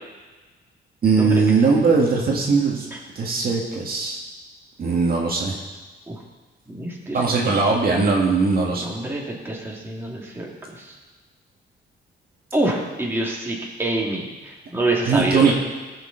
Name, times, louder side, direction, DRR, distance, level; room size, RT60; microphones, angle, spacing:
voice 1, 1.0-2.9 3.2-4.2 4.8-5.6 7.1-8.8 15.1-15.5, right 4 dB, 50° right, -2 dB, 1.9 m, -19 dB
voice 2, 6.7-7.6 8.8-10.9 12.5-15.5, right 2 dB, 10° right, -3 dB, 2.1 m, -27 dB
17.0 x 6.6 x 4.0 m, 1.3 s
cardioid pair, 110°, 20 cm